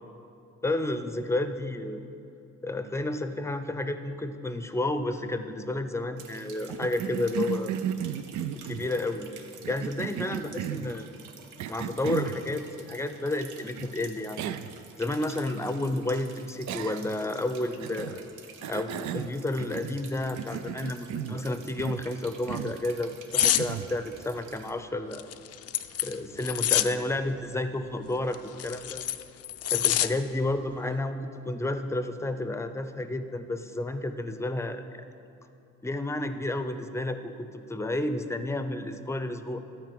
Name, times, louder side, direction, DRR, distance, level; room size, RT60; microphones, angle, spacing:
voice 1, 0.6-2.0 2.6-7.7 8.7-9.3 9.7-11.1 11.7-14.6 15.0-18.2 18.7-25.3 26.0-29.0 29.7-31.2 31.4-34.8 35.8-39.7, left 2 dB, 10° left, 9 dB, 0.6 m, -31 dB
sound 1, 6.2-24.7, right 6 dB, 90° right, 1.0 m, -50 dB
Cough, 6.7-8.9 9.6-10.9 11.6-12.4 13.8-13.9 14.4-14.8 15.1-15.2 16.7-17.2 17.8-18.2 18.6-20.0 20.4-21.4 21.8-22.1 22.5-22.8 23.4-23.9, right 9 dB, 70° right, 0.5 m, -34 dB
sound 2, 23.3-23.7 25.1-26.9 28.3-30.1 30.5-30.7, left 11 dB, 55° left, 0.5 m, -26 dB
12.5 x 4.9 x 7.6 m, 2.7 s
cardioid pair, 90°, 30 cm